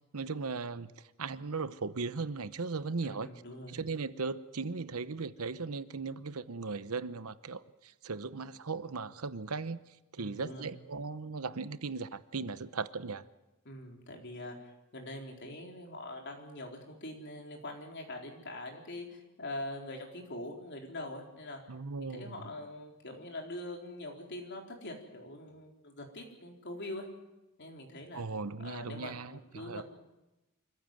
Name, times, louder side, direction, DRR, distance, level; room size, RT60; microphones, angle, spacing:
voice 1, 0.1-0.9 1.2-3.3 3.7-9.8 10.1-13.2 21.7-22.3 28.1-29.8, right 4 dB, 75° right, 14 dB, 0.9 m, -37 dB
voice 2, 3.0-3.8 10.2-10.7 13.6-21.6 22.0-27.1 27.6-28.2 28.6-29.8, left 1 dB, 50° left, 1 dB, 4.1 m, -43 dB
25.0 x 15.0 x 9.1 m, 1.0 s
head